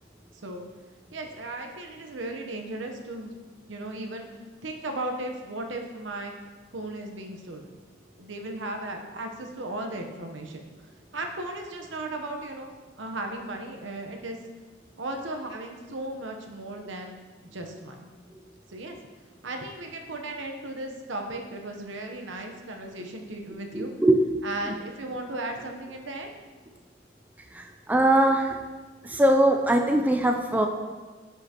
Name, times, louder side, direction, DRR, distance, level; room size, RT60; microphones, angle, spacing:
voice 1, 0.3-0.7 1.1-3.3 3.7-4.3 4.6-6.3 6.7-7.8 8.2-10.6 11.1-12.7 13.0-14.4 15.0-17.2 17.5-18.1 18.7-19.0 19.4-23.9 24.4-26.3, right 2 dB, 75° right, 3 dB, 0.9 m, -36 dB
voice 2, 23.7-24.2 27.5-28.6 29.0-30.7, right 1 dB, 10° right, 3 dB, 0.4 m, -21 dB
9.5 x 5.6 x 2.9 m, 1.4 s
head